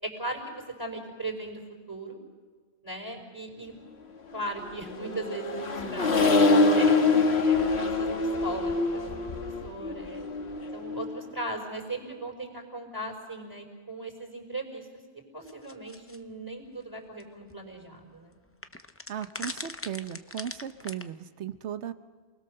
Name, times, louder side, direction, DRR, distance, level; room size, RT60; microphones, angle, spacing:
voice 1, 0.0-1.6 1.9-2.2 2.8-3.7 4.3-9.2 9.6-10.2 10.7-18.4, right 1 dB, 20° right, 2 dB, 5.1 m, -38 dB
Accelerating revving vroom, 4.6-11.2, left 3 dB, 70° left, 1.7 m, -25 dB
sound 1, 15.5-16.2 17.2-17.3 17.5-17.6 18.6-21.0, left 2 dB, 15° left, 0.5 m, -39 dB
voice 2, 19.1-21.9, right 9 dB, 85° right, 11 dB, 1.2 m, -36 dB
28.5 x 20.0 x 6.6 m, 1.5 s
omnidirectional pair, 1.1 m